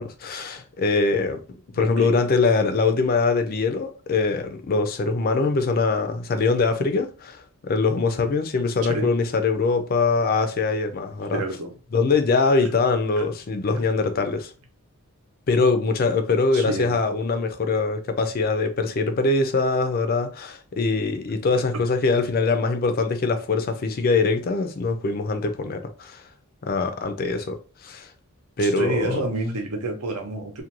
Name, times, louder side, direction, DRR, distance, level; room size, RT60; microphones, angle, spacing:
voice 1, 0.0-1.4 1.7-11.4 11.9-14.5 15.5-26.2 26.6-28.1 28.6-29.3, left 3 dB, 40° left, 0.4 m, -23 dB
voice 2, 1.7-2.1 8.8-9.1 11.3-11.7 12.6-12.7 16.5-17.0 28.6-30.6, right 2 dB, 80° right, 0.8 m, -29 dB
2.4 x 2.2 x 2.9 m
head